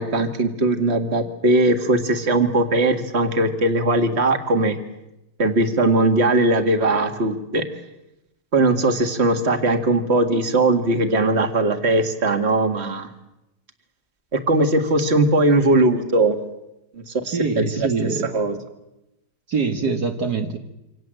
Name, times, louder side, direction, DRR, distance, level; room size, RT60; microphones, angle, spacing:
voice 1, 0.0-4.8 5.4-7.6 8.5-13.1 14.3-16.4 17.0-17.9 18.3-18.6, right 2 dB, 35° right, 7 dB, 2.4 m, -19 dB
voice 2, 17.3-18.3 19.5-20.6, right 4 dB, 60° right, 5 dB, 2.1 m, -24 dB
27.5 x 26.0 x 7.8 m, 0.92 s
omnidirectional pair, 2.0 m